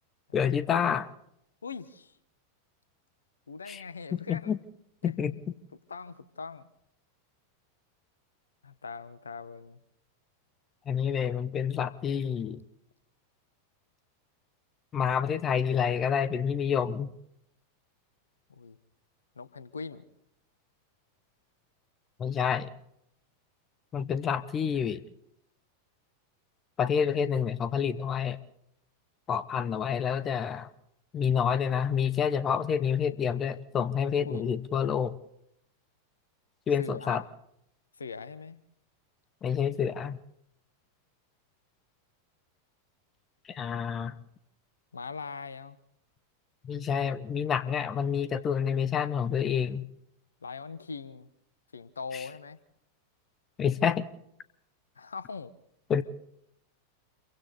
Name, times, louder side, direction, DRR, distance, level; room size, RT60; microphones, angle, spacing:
voice 1, 0.3-1.1 3.7-3.8 4.3-4.6 5.0-5.3 10.9-12.6 14.9-17.1 22.2-22.7 23.9-25.0 26.8-28.4 29.3-30.7 31.1-35.2 36.7-37.2 39.4-40.2 43.5-44.1 46.6-49.9 52.1-52.2 53.6-54.1 55.9-56.0, left 7 dB, 25° left, 15 dB, 1.1 m, -28 dB
voice 2, 1.6-2.2 3.5-4.5 5.0-5.1 5.9-6.7 8.6-9.8 18.5-18.8 19.3-20.1 34.3-34.5 36.8-37.2 38.0-38.6 44.9-45.8 50.4-51.3 51.7-52.6 54.9-55.5, left 5 dB, 75° left, 16 dB, 1.1 m, -41 dB
28.0 x 23.5 x 4.1 m, 0.76 s
figure-of-eight pair, 90°, 0 cm